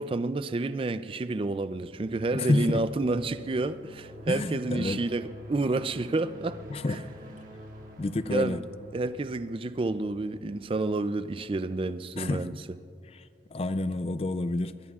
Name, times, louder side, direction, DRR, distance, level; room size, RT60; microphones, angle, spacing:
voice 1, 0.0-6.6 6.9-7.0 8.3-8.6 8.9-12.5, right 2 dB, 30° right, 0.4 m, -30 dB
sound 1, 1.5-12.3, left 1 dB, 50° right, 1.5 m, -49 dB
voice 2, 2.3-2.8 4.3-5.0 6.7-7.1 8.0-8.6 12.2-12.5 13.5-14.7, left 2 dB, 35° left, 0.4 m, -28 dB
22.0 x 21.5 x 2.4 m
head